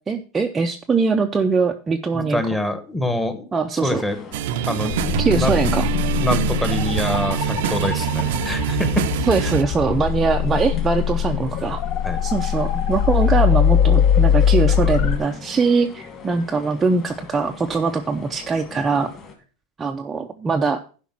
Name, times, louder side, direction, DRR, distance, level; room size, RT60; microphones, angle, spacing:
voice 1, 0.1-2.4 3.5-4.0 5.2-5.9 9.3-11.8 12.2-19.1 19.8-20.8, right 4 dB, 15° right, 3 dB, 0.5 m, -22 dB
voice 2, 2.1-3.4 3.7-4.2 4.7-5.5 6.2-9.0 9.4-9.5 12.0-12.2, left 1 dB, 5° left, 8 dB, 1.1 m, -25 dB
sound 1, 3.8-19.3, left 5 dB, 25° left, 2.4 m, -42 dB
sound 2, 4.3-9.6, right 11 dB, 65° right, 0.6 m, -24 dB
sound 3, 4.9-15.2, left 9 dB, 50° left, 1.2 m, -21 dB
11.5 x 5.1 x 5.8 m, 0.39 s
supercardioid pair, 155°, 0 cm